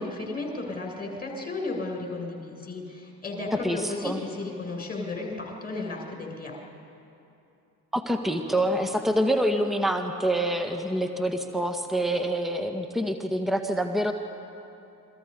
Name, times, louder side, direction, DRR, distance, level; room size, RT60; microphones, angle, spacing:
voice 1, 0.0-6.6, left 2 dB, 20° left, 0 dB, 7.1 m, -34 dB
voice 2, 3.6-4.2 7.9-14.1, right 1 dB, ahead, 6 dB, 1.8 m, -26 dB
29.5 x 24.0 x 5.5 m, 2.8 s
figure-of-eight pair, 55°, 49 cm